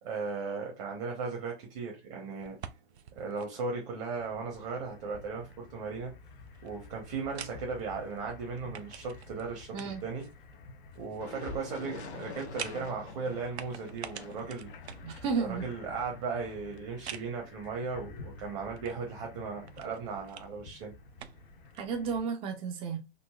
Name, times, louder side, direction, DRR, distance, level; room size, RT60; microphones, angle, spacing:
voice 1, 0.0-2.6 3.1-6.1 6.6-10.3 10.9-14.7 15.4-20.9, right 4 dB, 40° right, 0.9 m, -37 dB
sound 1, 2.4-21.9, right 9 dB, 80° right, 0.5 m, -50 dB
sound 2, 4.1-22.2, left 4 dB, 50° left, 0.6 m, -51 dB
sound 3, 11.2-17.3, left 4 dB, 90° left, 0.8 m, -47 dB
voice 2, 15.0-15.7 21.8-23.0, right 5 dB, 15° right, 0.5 m, -32 dB
3.8 x 2.0 x 2.3 m
hypercardioid pair, 115°, 32 cm